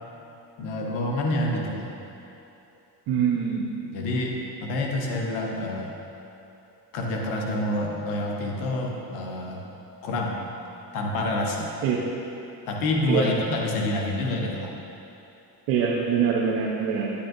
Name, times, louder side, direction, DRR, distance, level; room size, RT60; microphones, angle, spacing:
voice 1, 0.6-1.9 3.9-5.9 6.9-9.6 10.0-10.5 10.9-11.7 12.7-14.7, left 1 dB, 85° left, 0 dB, 1.2 m, -27 dB
voice 2, 3.1-3.8 11.8-12.0 13.1-13.3 15.7-17.1, right 7 dB, 75° right, -4 dB, 1.0 m, -24 dB
8.7 x 8.5 x 2.7 m, 2.8 s
hypercardioid pair, 65°, 45 cm